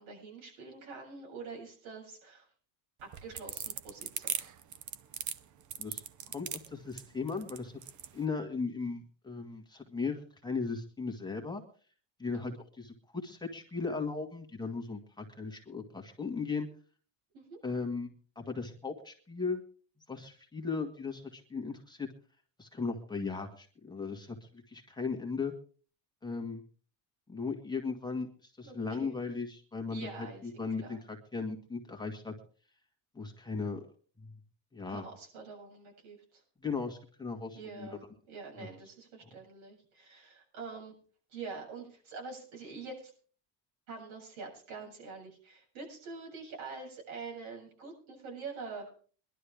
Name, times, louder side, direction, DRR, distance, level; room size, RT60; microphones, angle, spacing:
voice 1, 0.0-2.5 3.0-4.5 17.3-17.6 28.6-29.2 29.9-31.0 34.9-36.4 37.5-40.9 41.3-43.1 43.9-48.9, right 4 dB, 75° right, 0 dB, 7.4 m, -45 dB
sound 1, 3.0-8.1, right 10 dB, 40° right, 0.8 m, -38 dB
voice 2, 5.8-7.7 8.1-11.6 12.2-16.7 17.6-19.6 20.1-22.1 22.6-24.4 24.7-25.5 26.2-26.6 27.3-32.3 33.1-33.9 34.2-34.4 34.7-35.0 36.6-38.0 38.6-38.7 39.2-39.4, left 4 dB, 10° left, 2 dB, 1.7 m, -37 dB
21.5 x 11.5 x 3.5 m, 0.42 s
cardioid pair, 140°, 46 cm